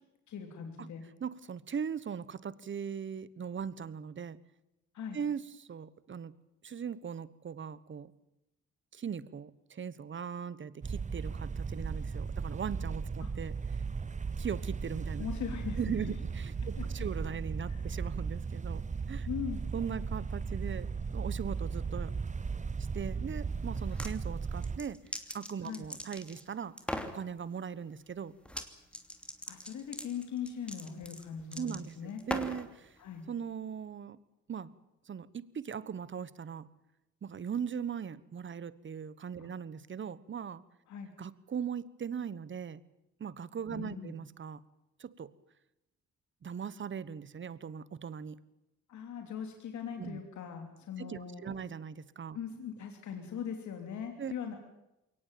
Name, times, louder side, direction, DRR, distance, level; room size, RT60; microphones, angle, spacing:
voice 1, 0.3-1.0 4.9-5.2 13.2-13.3 15.2-16.1 16.8-16.9 17.7-17.9 19.2-19.6 25.6-25.8 29.5-32.2 33.0-33.2 39.4-39.5 40.9-41.1 43.7-44.2 48.9-51.6 52.3-54.6, left 7 dB, 70° left, 4 dB, 3.1 m, -40 dB
voice 2, 1.2-4.4 5.1-6.3 6.6-8.1 8.9-13.6 14.4-15.3 15.8-18.8 19.1-19.3 19.7-20.9 21.1-22.1 22.9-25.0 25.3-26.7 27.1-28.3 31.6-32.9 33.3-34.2 34.5-34.7 35.1-36.7 37.2-40.6 41.2-42.8 43.2-44.6 45.0-45.3 46.4-48.4 50.0-50.2 51.0-52.4 54.2-54.3, right 7 dB, 40° right, 18 dB, 1.2 m, -39 dB
sound 1, 10.8-24.8, right 5 dB, 25° right, 0.9 m, -36 dB
sound 2, 23.8-24.1 24.6-26.4 26.8-27.2 28.5-28.7 28.9-32.7, equal, 5° left, 2.9 m, -40 dB
22.5 x 18.5 x 9.1 m, 0.89 s
cardioid pair, 90°, 30 cm